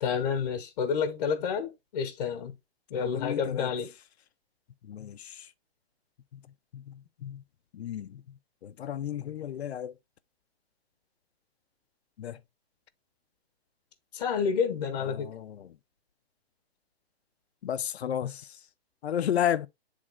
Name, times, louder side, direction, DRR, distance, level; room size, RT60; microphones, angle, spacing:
voice 1, 0.0-2.5 2.9-3.9 14.1-15.3, left 6 dB, 40° left, 1.2 m, -29 dB
voice 2, 2.9-3.7 4.8-5.5 6.3-6.4 6.7-7.4 7.7-9.9 12.2-12.4 15.0-15.8 17.6-18.6 19.0-19.7, left 10 dB, 85° left, 0.8 m, -33 dB
7.6 x 3.7 x 3.5 m
hypercardioid pair, 170°, 31 cm